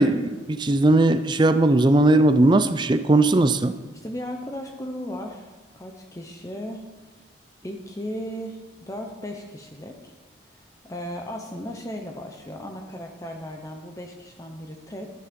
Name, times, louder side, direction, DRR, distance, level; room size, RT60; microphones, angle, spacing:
voice 1, 0.0-3.7, right 2 dB, 25° right, 11 dB, 0.4 m, -18 dB
voice 2, 3.9-6.8 7.1-7.2 7.6-10.1 10.5-15.1, equal, 15° left, 2 dB, 0.8 m, -36 dB
11.5 x 10.5 x 5.3 m, 1.3 s
head